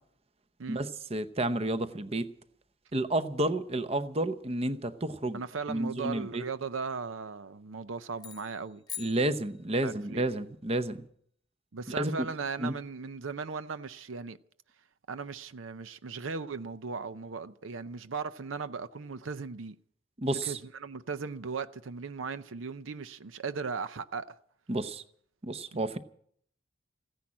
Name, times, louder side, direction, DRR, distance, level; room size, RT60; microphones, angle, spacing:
voice 1, 0.7-2.3 2.9-5.4 5.7-6.4 9.0-11.1 12.0-12.1 12.6-12.7 20.2-20.6 24.7-25.0 25.4-26.0, right 1 dB, 30° right, 0.8 m, -31 dB
voice 2, 5.3-8.8 9.8-10.3 11.7-14.4 15.1-19.8 20.4-24.4 25.7-25.8, right 5 dB, 85° right, 0.7 m, -37 dB
sound 1, 8.1-10.1, left 9 dB, 20° left, 1.1 m, -45 dB
15.5 x 10.5 x 8.7 m
head